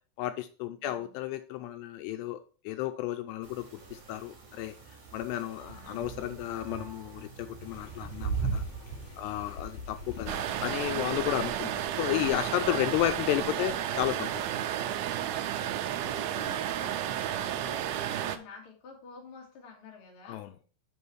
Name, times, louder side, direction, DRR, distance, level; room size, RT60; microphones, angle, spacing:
voice 1, 0.2-4.7 5.1-8.6 9.2-14.5 20.3-20.5, left 13 dB, 85° left, 8 dB, 2.6 m, -33 dB
voice 2, 0.8-1.2 5.4-6.0 10.2-10.3 13.0-13.1 15.5-20.4, left 5 dB, 45° left, 0 dB, 1.9 m, -50 dB
sound 1, 3.4-10.9, right 5 dB, 45° right, 2.5 m, -39 dB
sound 2, 7.6-14.1, left 4 dB, 65° left, 1.9 m, -48 dB
sound 3, 10.3-18.4, right 11 dB, 80° right, 2.2 m, -32 dB
6.2 x 5.7 x 4.6 m, 0.39 s
omnidirectional pair, 4.9 m